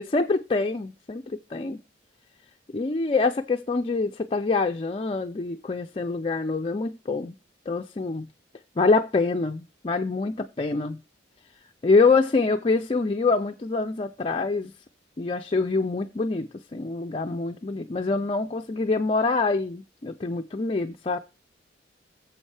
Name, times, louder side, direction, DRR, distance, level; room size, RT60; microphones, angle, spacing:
voice 1, 0.0-1.8 2.7-7.3 7.7-8.3 8.8-11.0 11.8-14.7 15.2-21.2, left 3 dB, 30° left, 0.4 m, -25 dB
9.7 x 7.1 x 3.3 m
head